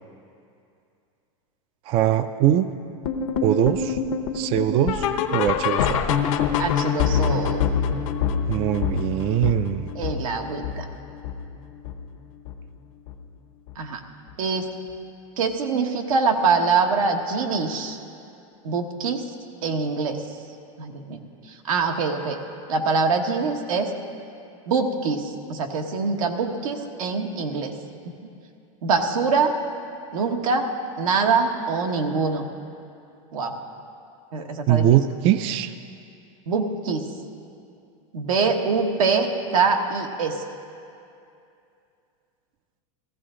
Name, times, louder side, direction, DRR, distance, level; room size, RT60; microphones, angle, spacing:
voice 1, 1.9-2.7 3.4-4.0 4.3-6.0 8.5-9.9 34.7-35.7, right 11 dB, 35° right, 11 dB, 0.4 m, -21 dB
sound 1, 3.0-12.2 12.5-12.8 13.1-13.2 13.7-13.8 14.3-14.4, left 7 dB, 75° left, 0.9 m, -25 dB
voice 2, 6.6-7.6 9.9-10.8 13.8-14.0 14.4-14.7 15.4-18.0 18.6-19.2 19.6-20.2 20.8-21.2 21.7-22.4 22.7-23.9 24.7-27.7 28.8-29.5 30.1-30.7 31.0-32.4 33.3-33.6 34.3-34.9 36.5-37.0 38.1-40.4, right 4 dB, 90° right, 3 dB, 1.3 m, -24 dB
15.5 x 14.5 x 3.8 m, 2.6 s
supercardioid pair, 145°, 17 cm